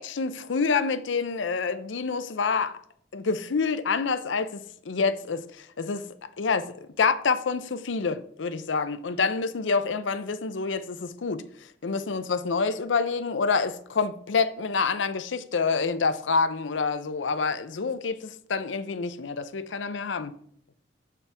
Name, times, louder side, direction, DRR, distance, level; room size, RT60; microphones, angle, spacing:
voice 1, 0.0-2.8 3.1-6.1 6.4-11.4 11.8-20.3, left 4 dB, 85° left, 0.6 m, -27 dB
7.2 x 6.8 x 3.5 m
head